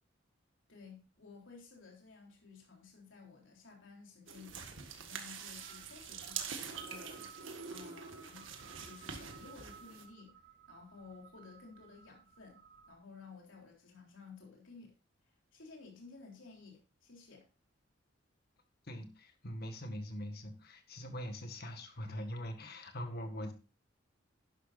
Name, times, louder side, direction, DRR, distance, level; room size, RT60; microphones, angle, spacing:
voice 1, 0.7-8.5 8.8-10.4 10.7-14.9 15.3-17.5, left 4 dB, 90° left, -1 dB, 3.5 m, -55 dB
sound 1, 4.3-10.0, right 6 dB, 85° right, 1.7 m, -45 dB
sound 2, 4.5-12.9, right 7 dB, 55° right, 2.8 m, -59 dB
voice 2, 18.9-23.5, equal, 55° left, 6 dB, 1.9 m, -42 dB
11.5 x 11.0 x 2.6 m, 0.32 s
head